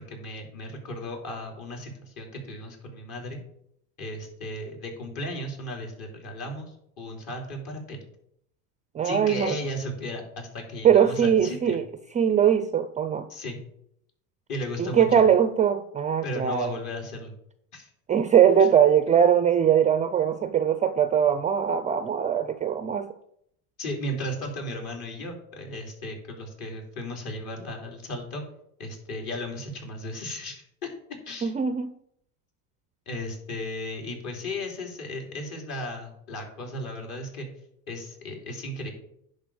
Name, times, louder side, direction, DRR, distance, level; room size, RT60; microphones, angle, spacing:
voice 1, 0.0-3.4 4.0-8.0 9.0-11.8 13.3-13.6 14.5-15.2 16.2-17.3 17.7-17.9 18.6-18.7 19.1-19.2 23.8-28.4 28.8-30.9 31.3-31.5 33.1-37.5 37.9-38.9, left 1 dB, 50° left, 2 dB, 3.1 m, -35 dB
voice 2, 8.9-9.6 10.8-11.8 12.1-13.3 14.8-16.8 18.1-23.1 31.4-31.9, right 8 dB, 15° right, 11 dB, 0.4 m, -21 dB
10.5 x 3.7 x 7.0 m, 0.72 s
hypercardioid pair, 85°, 45 cm